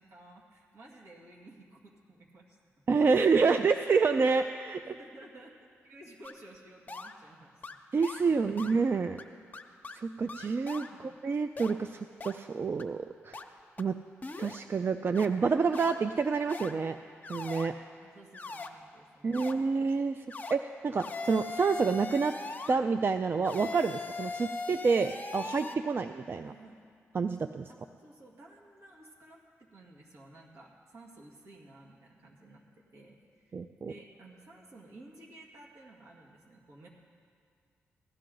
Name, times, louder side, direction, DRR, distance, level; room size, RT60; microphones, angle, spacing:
voice 1, 0.0-2.6 4.8-7.5 10.8-11.1 18.0-19.7 20.3-20.4 26.4-26.8 27.7-33.6 33.8-36.9, right 2 dB, 75° right, -2 dB, 2.1 m, -54 dB
voice 2, 2.9-5.0 7.9-9.2 9.9-12.0 12.2-13.4 13.8-13.9 14.4-17.0 17.3-17.7 19.2-22.3 22.7-26.5 27.1-27.7 33.5-33.9, right 4 dB, 45° right, 9 dB, 0.4 m, -28 dB
sound 1, 6.2-6.3 6.9-7.1 7.6-7.8 8.0-8.2 8.6-8.7 9.2-9.3 9.5-10.0 10.3-10.9 11.6-11.7 12.2-12.3 12.8-12.9 13.3-13.4 13.8-13.9 14.2-14.6 15.1-15.2 15.7-16.0 16.5-16.7 17.2-17.7 18.3-18.7 19.3-19.5 20.3-20.6 21.0-22.8 23.4-25.7, left 3 dB, 35° left, 0.8 m, -40 dB
16.0 x 11.5 x 3.9 m, 2.2 s
cardioid pair, 60°, 5 cm